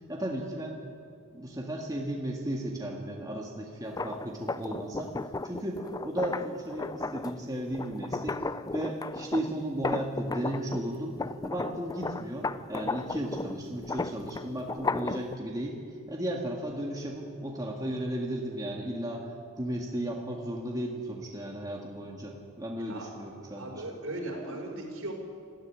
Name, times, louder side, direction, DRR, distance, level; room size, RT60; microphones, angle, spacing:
voice 1, 0.1-0.8 1.3-5.1 5.4-8.4 8.7-11.2 11.4-15.8 16.1-19.3 19.6-23.7, right 1 dB, 15° right, -1 dB, 1.8 m, -35 dB
sound 1, 3.8-10.9 11.2-15.4, left 3 dB, 15° left, 0.4 m, -35 dB
voice 2, 23.6-25.1, right 1 dB, 75° right, 0 dB, 5.2 m, -37 dB
19.5 x 14.0 x 10.0 m, 2.3 s
head